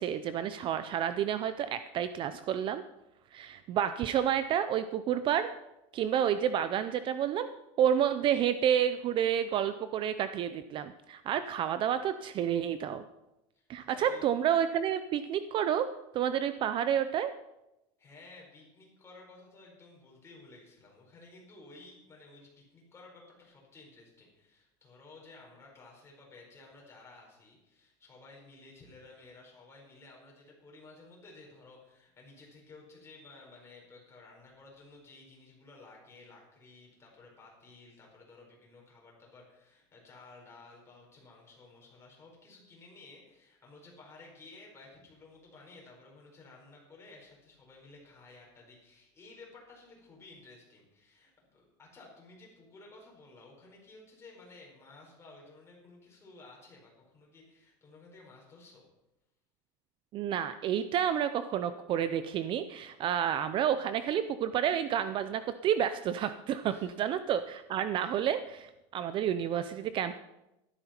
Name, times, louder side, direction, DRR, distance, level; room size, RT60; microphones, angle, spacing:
voice 1, 0.0-2.8 3.3-5.5 5.9-7.5 7.8-13.0 13.7-15.9 16.1-17.3 60.1-70.2, right 9 dB, 35° right, 12 dB, 0.5 m, -30 dB
voice 2, 13.5-14.3 18.0-58.8 66.6-66.9, left 3 dB, 20° left, -2 dB, 4.8 m, -54 dB
14.0 x 12.0 x 4.4 m, 0.91 s
cardioid pair, 155°, 14 cm